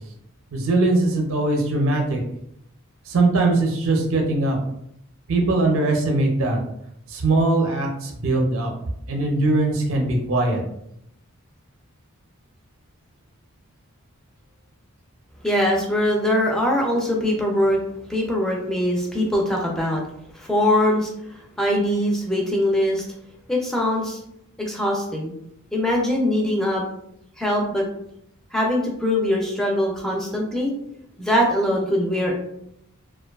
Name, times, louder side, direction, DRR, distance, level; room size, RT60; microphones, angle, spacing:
voice 1, 0.5-2.2 3.1-4.6 5.3-6.6 7.1-8.7 9.1-10.6, right 2 dB, 60° right, 1 dB, 0.5 m, -21 dB
voice 2, 15.4-17.8 18.1-20.0 20.3-23.0 23.5-24.2 24.6-25.3 25.7-26.8 27.4-27.9 28.5-30.7 31.2-32.3, left 1 dB, ahead, -2 dB, 0.3 m, -22 dB
2.5 x 2.2 x 2.3 m, 0.76 s
head